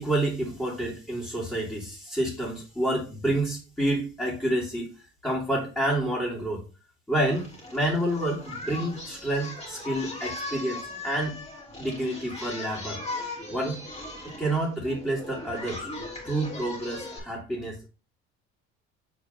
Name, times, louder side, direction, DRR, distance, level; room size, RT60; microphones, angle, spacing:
voice 1, 0.0-4.9 5.2-6.6 7.1-11.4 11.8-13.0 13.5-13.8 14.4-15.9 16.2-17.9, right 1 dB, 5° left, -7 dB, 3.0 m, -29 dB
Singing, 7.2-17.2, left 2 dB, 20° left, 3.5 m, -38 dB
5.2 x 4.3 x 5.4 m, 0.33 s
supercardioid pair, 90°, 31 cm